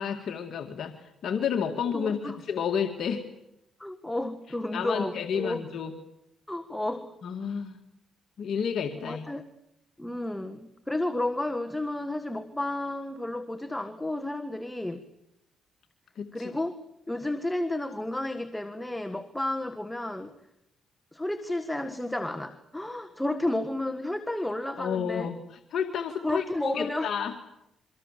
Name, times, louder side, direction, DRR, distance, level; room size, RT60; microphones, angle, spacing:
voice 1, 0.0-3.2 4.7-5.9 7.2-7.8 8.4-9.3 16.2-16.5 24.8-27.4, left 7 dB, 65° left, 4 dB, 2.0 m, -31 dB
voice 2, 1.7-2.4 3.8-5.6 6.5-7.1 9.0-9.4 10.0-15.1 16.3-16.8 17.1-20.3 21.1-25.3 26.2-27.1, left 1 dB, 10° left, 9 dB, 1.6 m, -32 dB
27.5 x 24.5 x 7.5 m, 0.84 s
cardioid pair, 90°, 0 cm